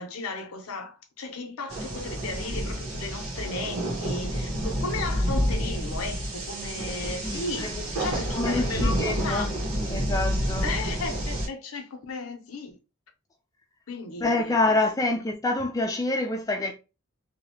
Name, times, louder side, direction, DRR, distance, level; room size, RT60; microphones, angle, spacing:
voice 1, 0.0-9.5 10.6-12.7 13.9-14.8, left 3 dB, 85° left, 0.7 m, -35 dB
sound 1, 1.7-11.5, equal, 80° right, 1.1 m, -29 dB
voice 2, 7.2-7.8 8.1-9.5 9.9-10.7 14.2-16.7, left 2 dB, 15° left, 0.4 m, -27 dB
2.8 x 2.1 x 2.8 m
head